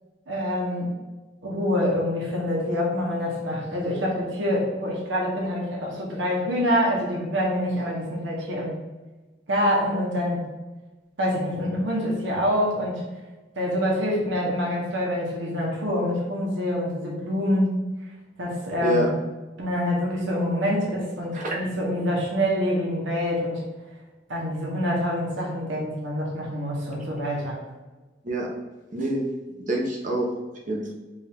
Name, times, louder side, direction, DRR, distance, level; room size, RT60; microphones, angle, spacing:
voice 1, 0.3-0.9 1.4-8.8 9.5-10.4 11.2-13.0 13.6-17.8 18.4-19.1 19.6-23.6 24.3-27.6, equal, 90° right, -3 dB, 1.0 m, -26 dB
voice 2, 28.9-29.3 29.7-30.3 30.7-30.9, right 1 dB, 45° right, -1 dB, 0.9 m, -26 dB
5.0 x 2.5 x 3.5 m, 1.2 s
head